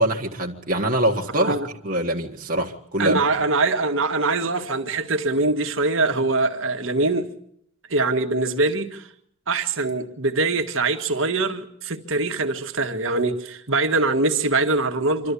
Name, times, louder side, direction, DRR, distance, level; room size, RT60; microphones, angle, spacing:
voice 1, 0.0-1.6 1.8-3.2, right 1 dB, 40° right, 1.7 m, -23 dB
voice 2, 1.3-1.7 3.0-7.3 7.9-9.1 9.5-15.3, right 3 dB, 65° right, 1.7 m, -23 dB
26.0 x 13.5 x 8.4 m
head